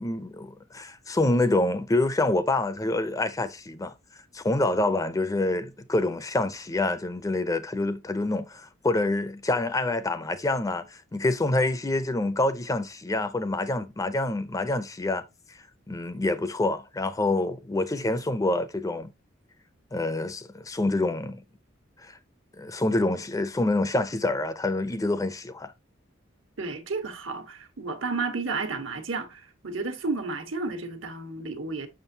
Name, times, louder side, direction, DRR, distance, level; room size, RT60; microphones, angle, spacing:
voice 1, 0.0-3.9 4.3-15.3 15.9-19.1 19.9-21.4 22.0-22.2 22.6-25.7, left 2 dB, 20° left, 0.5 m, -27 dB
voice 2, 26.6-31.9, right 3 dB, 80° right, 1.4 m, -32 dB
7.2 x 6.1 x 2.7 m
head